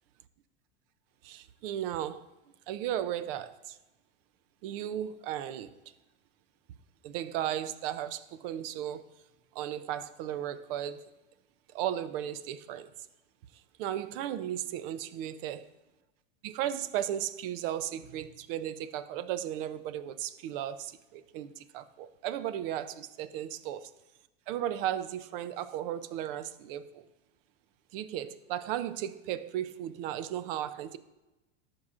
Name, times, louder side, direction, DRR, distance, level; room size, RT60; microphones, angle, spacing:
voice 1, 1.2-2.3 2.7-3.8 4.6-5.7 7.0-9.1 9.5-11.1 11.7-12.9 13.8-15.7 16.4-23.9 24.5-27.0 27.9-31.0, right 11 dB, 60° right, 0.6 m, -35 dB
13.0 x 4.7 x 2.5 m
hypercardioid pair, 100°, 31 cm